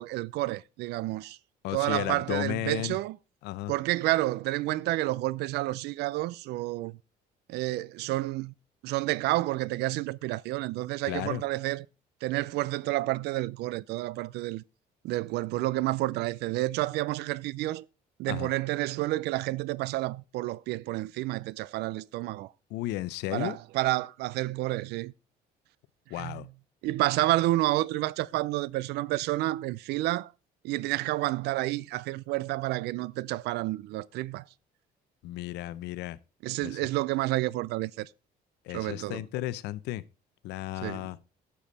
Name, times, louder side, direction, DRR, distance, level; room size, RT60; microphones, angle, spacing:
voice 1, 0.0-1.4 1.7-3.2 3.7-7.0 7.5-8.5 8.8-11.9 12.2-14.6 15.0-17.8 18.2-22.5 23.3-25.1 26.2-26.5 26.8-30.3 30.6-34.4 36.4-38.1 38.7-39.2 40.8-41.1, right 18 dB, 80° right, 0.4 m, -30 dB
voice 2, 1.6-3.0 3.4-3.7 11.1-11.4 18.3-18.5 22.7-23.6 26.1-26.5 35.2-36.2 36.6-36.8 38.7-40.0 40.4-41.2, left 16 dB, 85° left, 0.6 m, -34 dB
11.5 x 7.0 x 4.1 m
cardioid pair, 110°, 17 cm